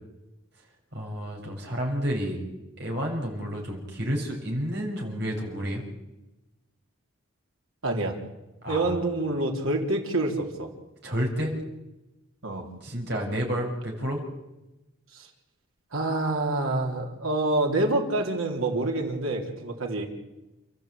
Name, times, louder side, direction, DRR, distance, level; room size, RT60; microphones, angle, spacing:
voice 1, 0.9-2.4 2.8-5.8 8.6-8.9 11.0-11.6 12.8-14.2, equal, 55° right, 0 dB, 6.5 m, -30 dB
voice 2, 7.8-8.2 8.7-10.7 12.4-12.7 15.1-15.3 15.9-20.1, right 2 dB, 90° right, 2 dB, 3.8 m, -27 dB
29.5 x 14.0 x 8.7 m, 0.99 s
head